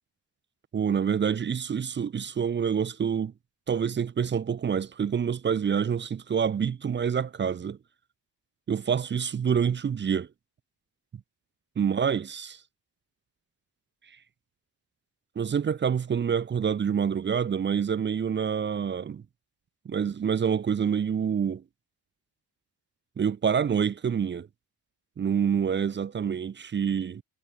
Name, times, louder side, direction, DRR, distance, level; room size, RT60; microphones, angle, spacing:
voice 1, 0.7-3.3 3.7-7.8 8.7-10.3 11.8-12.6 15.4-19.2 19.9-21.6 23.2-24.5 25.2-27.2, right 7 dB, 30° right, 0.4 m, -27 dB
wide cardioid pair, 165°, 41 cm